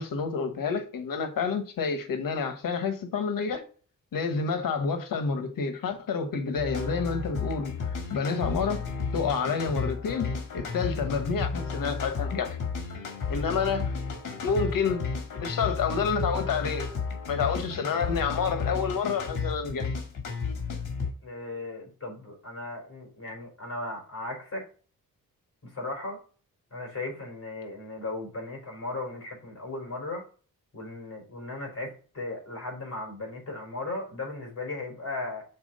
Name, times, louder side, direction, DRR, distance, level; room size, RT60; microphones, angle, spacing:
voice 1, 0.0-3.6 4.1-7.7 8.1-8.8 9.1-10.3 10.5-12.6 13.3-13.9 14.4-15.0 15.4-16.9 17.3-19.9, left 5 dB, 80° left, 1.3 m, -29 dB
sound 1, 6.6-21.1, left 5 dB, 65° left, 2.1 m, -33 dB
voice 2, 21.2-24.6 25.6-26.2 26.7-30.2 30.7-35.5, left 2 dB, 45° left, 3.8 m, -36 dB
6.1 x 4.2 x 5.2 m
cardioid pair, 105°, 33 cm